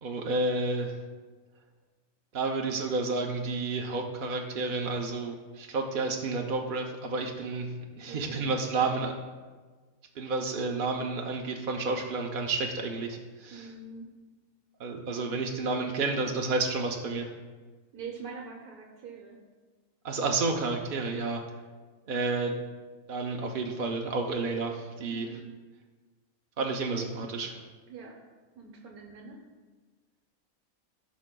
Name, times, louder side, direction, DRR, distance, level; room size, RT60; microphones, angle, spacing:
voice 1, 0.0-1.0 2.3-9.1 10.2-13.7 14.8-17.3 20.0-21.4 22.1-22.5 23.1-25.3 26.6-27.6, right 3 dB, 50° right, 1 dB, 0.6 m, -30 dB
voice 2, 8.1-8.9 13.5-14.1 17.9-19.4 25.1-25.5 27.9-28.1 28.6-29.4, right 5 dB, 80° right, -2 dB, 1.4 m, -44 dB
15.5 x 6.2 x 2.2 m, 1.4 s
omnidirectional pair, 1.5 m